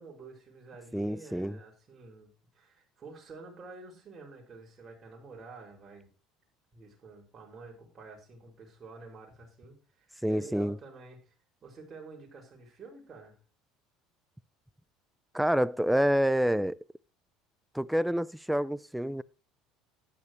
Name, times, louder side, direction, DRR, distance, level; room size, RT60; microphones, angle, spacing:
voice 1, 0.0-6.1 6.7-11.3 11.6-13.4, right 3 dB, 35° right, 6.6 m, -49 dB
voice 2, 0.9-1.6 10.2-10.8 15.3-16.8 17.7-19.2, equal, 5° right, 0.6 m, -27 dB
12.5 x 11.0 x 3.3 m
hypercardioid pair, 75°, 0 cm